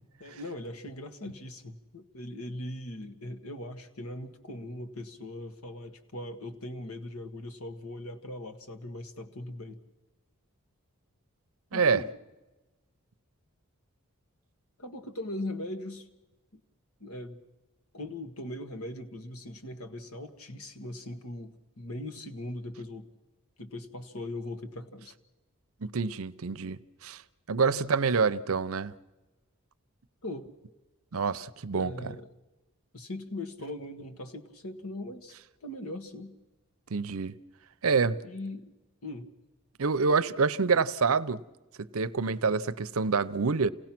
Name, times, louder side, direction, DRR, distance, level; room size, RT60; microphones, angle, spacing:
voice 1, 0.2-9.8 11.7-12.1 14.8-16.1 16.5-16.6 17.0-17.4 17.9-23.1 23.6-25.2 30.2-30.5 31.7-32.3 32.9-35.4 35.6-36.4 38.2-38.7 39.0-39.3, left 1 dB, 85° left, 1.7 m, -40 dB
voice 2, 11.7-12.0 25.8-27.2 27.5-28.9 31.1-31.9 36.9-37.3 37.8-38.2 39.8-41.4 41.8-43.7, right 5 dB, 75° right, 0.7 m, -27 dB
28.0 x 17.5 x 6.0 m
head